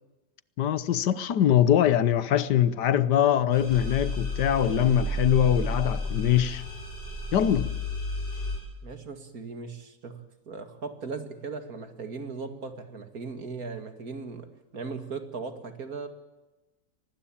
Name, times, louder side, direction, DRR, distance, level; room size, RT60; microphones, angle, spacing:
voice 1, 0.6-6.6 7.3-7.7, left 10 dB, 80° left, 1.6 m, -23 dB
sound 1, 3.5-8.6, left 1 dB, 30° left, 7.6 m, -32 dB
voice 2, 8.8-14.5 14.7-16.1, right 4 dB, 60° right, 2.6 m, -38 dB
24.0 x 19.5 x 8.7 m
omnidirectional pair, 1.8 m